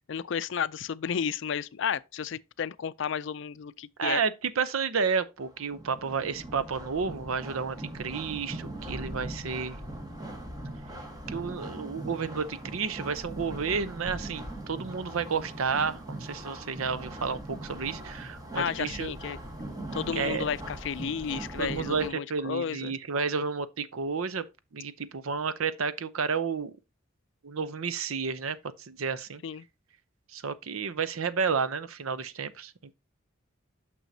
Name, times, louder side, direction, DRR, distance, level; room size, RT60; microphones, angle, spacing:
voice 1, 0.1-4.2 18.5-19.4 19.9-22.9 29.4-29.6, left 7 dB, 60° left, 0.4 m, -32 dB
voice 2, 4.0-9.8 11.3-19.1 20.1-20.5 21.6-24.5 24.7-26.7 27.4-28.6 28.9-29.4 30.3-32.7, right 5 dB, 85° right, 0.6 m, -31 dB
sound 1, 5.4-22.1, right 1 dB, 20° right, 1.2 m, -40 dB
9.1 x 6.1 x 2.7 m
head